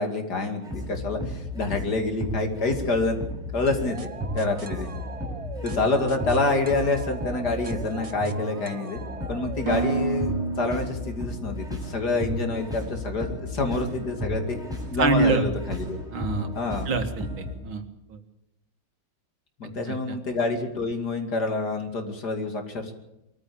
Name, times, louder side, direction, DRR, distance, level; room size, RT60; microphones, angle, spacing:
voice 1, 0.0-3.2 3.5-4.0 4.3-4.9 5.6-14.6 14.9-16.0 16.5-16.9 19.6-22.9, left 3 dB, 55° left, 5 dB, 3.0 m, -27 dB
sound 1, 0.6-17.5, left 1 dB, ahead, 7.3 m, -34 dB
sound 2, 3.7-11.5, right 4 dB, 30° right, 0.6 m, -35 dB
voice 2, 15.0-15.5 16.1-16.5 16.9-17.8 18.1-18.2 19.9-20.2, right 3 dB, 80° right, 8 dB, 2.6 m, -25 dB
23.0 x 14.5 x 8.6 m, 0.89 s
omnidirectional pair, 2.2 m